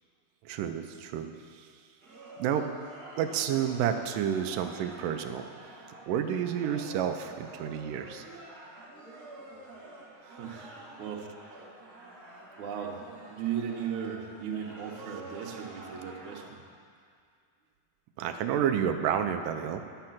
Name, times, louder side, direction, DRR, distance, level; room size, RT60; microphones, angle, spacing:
voice 1, 0.4-1.7 2.4-2.7 3.2-5.5 6.1-8.3 18.2-19.8, right 9 dB, 80° right, 7 dB, 2.1 m, -30 dB
sound 1, 2.0-16.5, right 2 dB, 45° right, 1.2 m, -48 dB
voice 2, 10.2-11.3 12.6-13.0 13.3-16.6, right 8 dB, 65° right, -1 dB, 2.4 m, -36 dB
12.0 x 9.0 x 5.8 m, 2.2 s
omnidirectional pair, 4.2 m